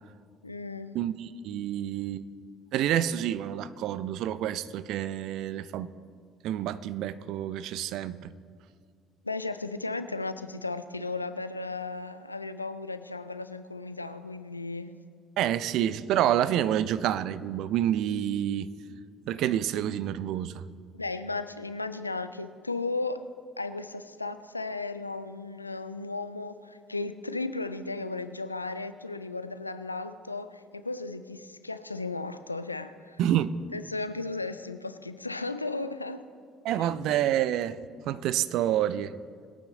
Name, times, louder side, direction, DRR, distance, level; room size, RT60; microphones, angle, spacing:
voice 1, 0.4-1.0 9.2-14.9 20.9-23.2 23.6-33.2 33.7-36.3 36.8-36.9, left 3 dB, 90° left, 0.4 m, -35 dB
voice 2, 0.9-2.3 2.7-5.9 6.4-8.3 15.4-18.7 19.3-20.6 33.2-33.6 36.6-37.8 38.1-39.1, right 11 dB, 55° right, 0.4 m, -28 dB
21.0 x 8.8 x 3.9 m
figure-of-eight pair, 55°, 0 cm